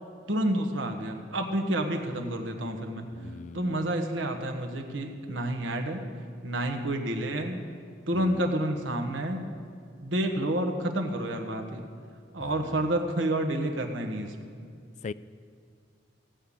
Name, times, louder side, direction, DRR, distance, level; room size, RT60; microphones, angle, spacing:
voice 1, 0.3-3.1 3.5-6.0 6.4-7.6 8.1-9.5 10.0-11.8 12.3-14.3, right 1 dB, 85° right, 4 dB, 1.4 m, -29 dB
voice 2, 3.1-3.8 8.1-8.4 12.4-12.8 15.0-15.1, left 4 dB, 40° left, 16 dB, 0.3 m, -41 dB
16.5 x 5.6 x 8.5 m, 2.3 s
head